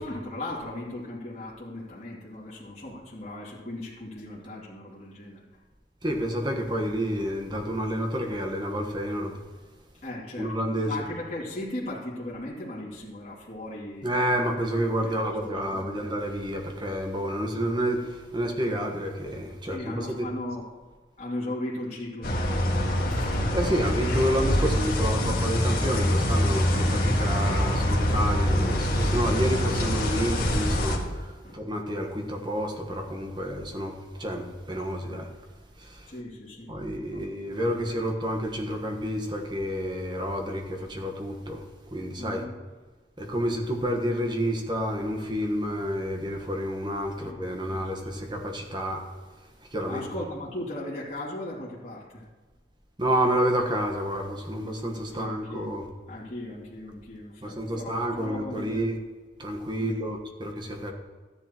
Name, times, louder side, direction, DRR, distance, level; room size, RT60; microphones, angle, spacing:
voice 1, 0.0-5.4 10.0-14.2 14.9-16.0 17.2-17.3 19.6-20.6 21.2-22.7 23.1-23.4 24.1-24.2 31.4-31.6 36.1-37.9 42.2-42.6 47.2-47.4 47.7-48.2 49.8-52.2 55.1-55.7 56.1-58.9 59.8-60.0, left 1 dB, 35° left, -8 dB, 2.5 m, -38 dB
voice 2, 6.0-9.3 10.4-10.9 14.0-20.3 23.5-33.9 34.2-35.3 35.8-36.1 36.7-41.6 41.9-42.4 43.2-49.0 49.7-50.0 53.0-55.8 57.4-59.0 59.4-60.9, equal, 25° right, 2 dB, 1.3 m, -29 dB
sound 1, 22.2-31.0, equal, 55° left, 1.8 m, -25 dB
13.5 x 10.5 x 3.0 m, 1.3 s
head